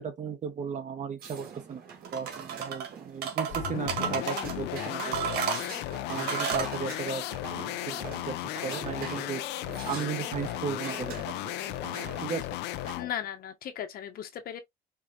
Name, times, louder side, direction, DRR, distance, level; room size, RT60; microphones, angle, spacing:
voice 1, 0.0-1.8 2.1-5.2 6.1-7.2 7.5-8.3 8.6-9.4 9.9-11.3 12.2-12.4, right 6 dB, 45° right, 1.5 m, -35 dB
sound 1, 1.2-12.9, right 6 dB, 60° right, 2.1 m, -45 dB
sound 2, 2.0-2.9 3.2-4.6 5.0-6.7, right 7 dB, 80° right, 1.7 m, -32 dB
sound 3, 3.5-13.2, left 15 dB, 85° left, 0.5 m, -35 dB
voice 2, 13.0-14.6, left 10 dB, 60° left, 1.2 m, -36 dB
4.9 x 3.0 x 2.9 m
cardioid pair, 110°, 17 cm